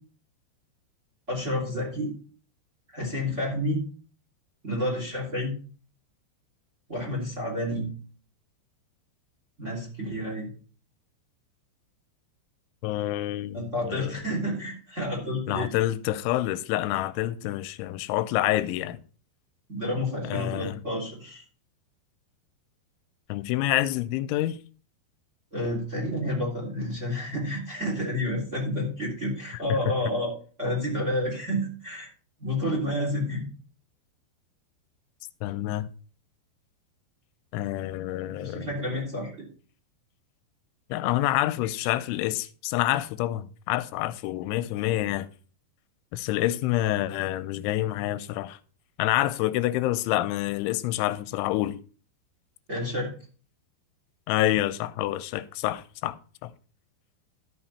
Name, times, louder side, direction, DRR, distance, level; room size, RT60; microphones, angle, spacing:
voice 1, 1.3-2.1 2.9-3.8 4.6-5.5 6.9-7.9 9.6-10.5 13.5-15.7 19.7-21.4 25.5-30.3 30.6-32.1 32.4-33.5 38.3-39.4 52.7-53.1, left 1 dB, 20° right, 2.9 m, -30 dB
voice 2, 12.8-14.1 15.5-19.0 20.2-20.8 23.3-24.6 29.7-29.8 35.4-35.9 37.5-38.7 40.9-45.3 46.1-48.6 49.0-51.8 54.3-56.2 56.4-56.5, left 15 dB, 90° left, 3.0 m, -27 dB
12.5 x 6.3 x 4.2 m
omnidirectional pair, 5.4 m